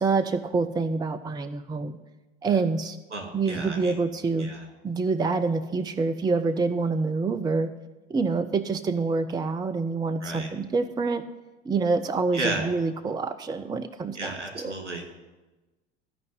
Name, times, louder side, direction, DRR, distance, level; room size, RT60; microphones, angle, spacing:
voice 1, 0.0-2.0 2.4-3.0 3.3-4.5 4.8-7.7 8.1-11.2 11.7-14.7, right 4 dB, 10° right, 10 dB, 0.6 m, -26 dB
voice 2, 3.1-4.0 4.4-4.6 10.2-10.5 12.3-12.6 14.1-15.1, right 2 dB, 80° right, 2 dB, 2.6 m, -33 dB
14.5 x 5.3 x 9.3 m, 1.1 s
figure-of-eight pair, 70°, 34 cm